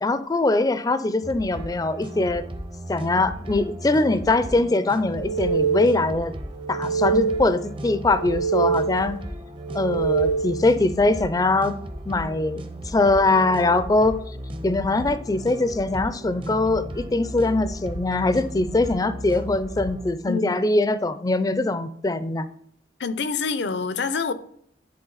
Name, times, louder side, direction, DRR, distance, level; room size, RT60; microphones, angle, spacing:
voice 1, 0.0-2.4 2.9-6.3 6.7-9.2 9.7-11.8 12.1-14.2 14.6-22.5, left 2 dB, 20° left, 0.4 m, -22 dB
sound 1, 1.2-20.1, right 1 dB, 30° right, 0.6 m, -36 dB
sound 2, 5.1-6.2 6.6-7.7 8.1-9.2 9.6-10.8, right 5 dB, 75° right, 0.5 m, -25 dB
voice 2, 20.3-20.6 23.0-24.3, left 4 dB, 75° left, 0.6 m, -26 dB
10.5 x 3.7 x 3.9 m
head